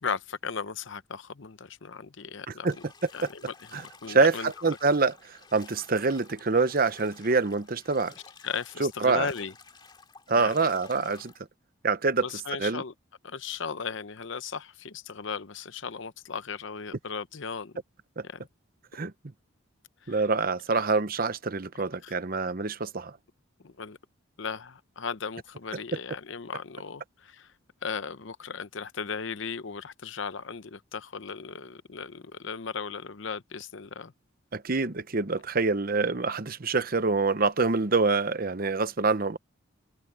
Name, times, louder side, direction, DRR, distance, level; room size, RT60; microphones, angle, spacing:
voice 1, 0.0-2.7 3.1-4.5 8.4-9.5 10.4-10.5 12.2-12.9 13.2-17.8 18.2-18.4 20.0-20.2 22.0-22.1 23.6-24.0 24.4-27.5 27.8-34.1, left 5 dB, 65° left, 0.8 m, -36 dB
Bathtub (filling or washing), 2.6-11.4, left 4 dB, 20° left, 2.2 m, -52 dB
voice 2, 3.7-8.1 8.8-9.3 10.3-11.3 11.8-12.3 12.6-12.8 18.2-18.3 18.9-19.1 20.1-23.2 25.7-25.8 34.5-39.4, right 4 dB, 45° right, 0.8 m, -26 dB
head